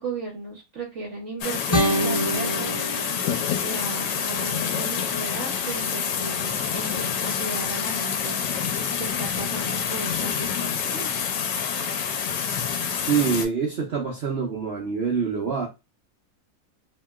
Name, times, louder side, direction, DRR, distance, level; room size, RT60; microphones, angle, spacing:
voice 1, 0.0-2.8 3.6-8.6 9.0-11.3, right 3 dB, 55° right, 0.9 m, -36 dB
sound 1, 1.4-13.5, left 7 dB, 80° left, 1.3 m, -27 dB
sound 2, 1.7-4.7, right 1 dB, 30° left, 0.7 m, -27 dB
voice 2, 12.9-15.7, right 6 dB, 80° right, 0.5 m, -25 dB
2.9 x 2.8 x 2.3 m
omnidirectional pair, 2.0 m